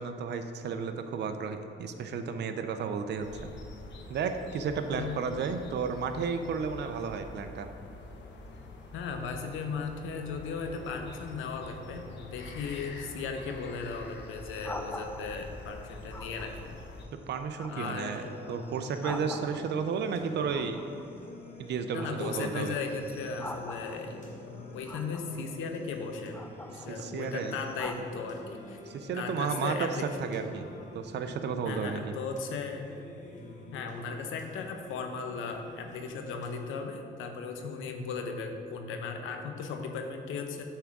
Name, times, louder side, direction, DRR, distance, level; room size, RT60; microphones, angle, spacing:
voice 1, 0.0-3.5 4.1-7.7 17.1-18.2 18.5-20.8 21.6-22.8 26.9-27.5 28.9-29.9 30.2-30.7 30.9-32.2, right 6 dB, 60° right, 7 dB, 0.6 m, -33 dB
sound 1, 3.2-17.1, left 2 dB, 65° left, 0.9 m, -46 dB
voice 2, 8.9-16.8 17.7-18.3 21.9-26.4 26.7-28.8 29.1-30.2 31.6-32.9 33.7-40.6, left 5 dB, 85° left, 5 dB, 0.8 m, -37 dB
sound 2, 13.3-15.5 16.1-16.8 17.2-19.9 20.5-21.6 21.9-24.3 24.9-25.6 26.2-28.0, left 1 dB, 10° left, 0.6 m, -44 dB
Singing, 18.1-37.1, left 1 dB, 40° left, 1.6 m, -48 dB
8.8 x 3.7 x 6.0 m, 2.6 s
cardioid pair, 90°, 20 cm